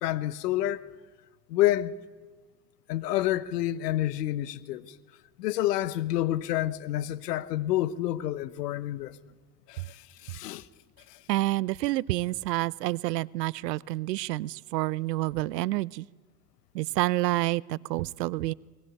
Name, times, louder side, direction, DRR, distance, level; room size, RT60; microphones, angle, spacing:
voice 1, 0.0-0.9 1.5-1.9 2.9-4.9 5.4-9.2 9.7-10.7, left 14 dB, 75° left, 1.1 m, -28 dB
voice 2, 11.3-16.1 16.7-18.5, right 18 dB, 80° right, 0.7 m, -28 dB
21.5 x 20.5 x 9.8 m
hypercardioid pair, 75°, 48 cm